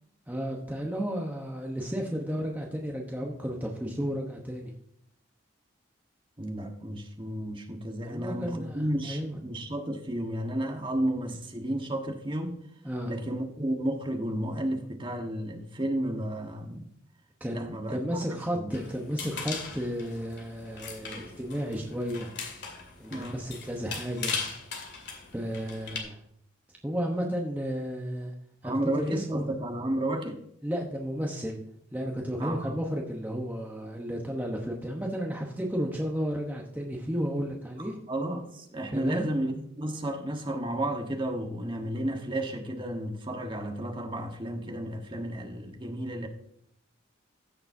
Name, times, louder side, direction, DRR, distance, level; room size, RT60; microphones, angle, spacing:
voice 1, 0.3-4.7 8.0-9.4 12.8-13.1 17.4-22.3 23.0-24.4 25.3-26.2 26.8-28.3 28.6-29.5 30.6-31.6 31.9-38.0 38.9-39.3, equal, 10° right, 1.0 m, -33 dB
voice 2, 6.4-12.6 13.1-16.8 17.5-18.0 18.3-18.7 23.1-23.4 28.6-30.4 32.4-32.8 37.8-46.3, right 1 dB, 25° right, 1.3 m, -32 dB
sound 1, 18.7-26.0, left 5 dB, 55° left, 2.4 m, -39 dB
15.5 x 6.8 x 2.7 m
head